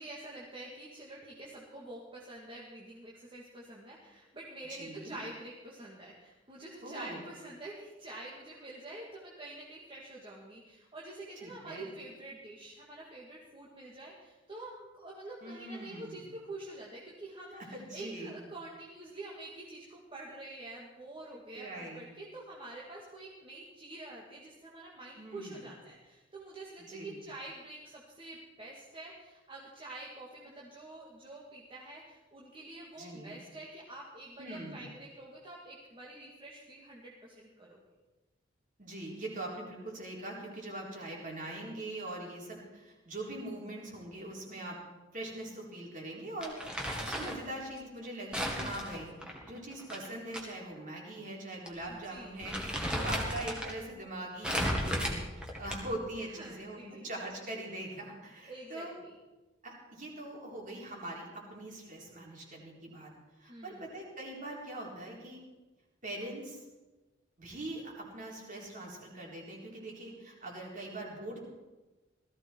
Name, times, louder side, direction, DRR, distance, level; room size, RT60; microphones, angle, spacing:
voice 1, 0.0-37.8 51.9-53.1 56.2-57.1 58.5-59.1 63.5-63.9, right 2 dB, 25° right, -4 dB, 2.1 m, -47 dB
voice 2, 4.7-5.2 6.8-7.3 11.4-11.9 15.4-16.2 17.5-18.5 21.5-22.0 25.2-25.6 26.8-27.2 33.0-33.4 34.4-34.8 38.8-44.8 45.1-58.9 59.6-63.1 63.4-65.4 66.0-66.6 67.4-71.4, right 1 dB, 45° right, -2 dB, 4.1 m, -42 dB
Crumpling crinkling, 46.4-47.4 48.3-50.4 50.8-50.9 51.7-51.8 52.2-53.7 54.4-56.0, equal, 5° right, 2.2 m, -34 dB
18.0 x 14.5 x 4.6 m, 1.2 s
head